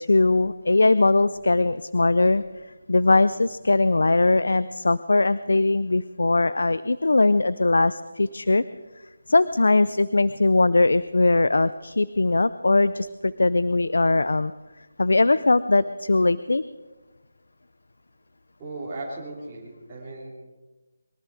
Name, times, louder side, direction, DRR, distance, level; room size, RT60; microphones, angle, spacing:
voice 1, 0.0-2.4 2.9-8.6 9.3-14.5 15.0-16.6, left 2 dB, 80° left, 15 dB, 0.5 m, -20 dB
voice 2, 18.6-20.3, right 2 dB, 20° right, -9 dB, 3.3 m, -36 dB
22.5 x 13.5 x 4.8 m, 1.2 s
figure-of-eight pair, 165°, 0 cm